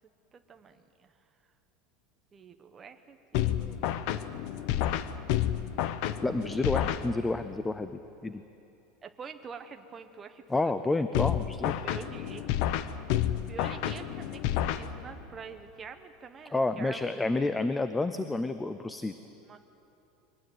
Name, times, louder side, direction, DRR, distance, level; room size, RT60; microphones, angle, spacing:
voice 1, 0.3-1.1 2.3-4.0 5.2-5.6 9.0-10.7 11.6-12.6 13.5-17.2 17.5-17.7 19.4-19.6, right 6 dB, 15° right, 6 dB, 1.1 m, -47 dB
sound 1, 3.3-7.5 11.1-15.4, left 11 dB, 50° left, 0.9 m, -30 dB
voice 2, 6.2-8.4 10.5-11.7 16.5-19.1, left 2 dB, 10° left, 10 dB, 0.5 m, -30 dB
23.5 x 19.0 x 9.3 m, 2.8 s
supercardioid pair, 175°, 0 cm